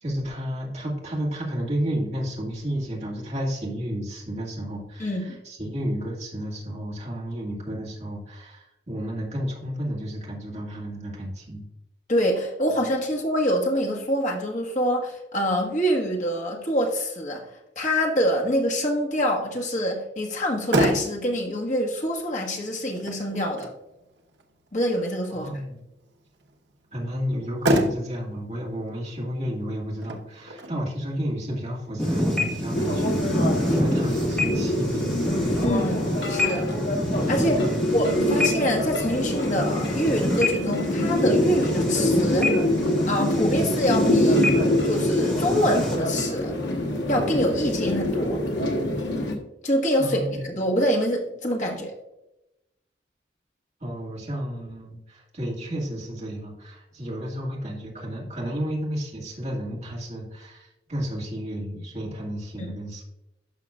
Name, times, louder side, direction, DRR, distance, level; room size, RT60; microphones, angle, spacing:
voice 1, 0.0-11.6 25.3-25.8 26.9-35.5 37.6-38.1 50.0-50.4 53.8-63.0, equal, 35° right, -3 dB, 1.9 m, -32 dB
voice 2, 5.0-5.4 12.1-17.4 17.7-23.7 24.7-25.5 35.6-36.7 37.3-42.5 43.1-46.5 47.1-48.4 49.6-50.2 50.5-51.9 62.6-62.7, equal, 40° left, 0 dB, 1.5 m, -25 dB
Motor vehicle (road), 20.3-33.3, right 1 dB, 80° right, 1.0 m, -31 dB
sound 1, 32.0-46.0, left 1 dB, 5° left, 1.5 m, -28 dB
sound 2, 32.7-49.4, left 1 dB, 75° left, 1.3 m, -25 dB
11.5 x 6.0 x 2.4 m, 0.90 s
head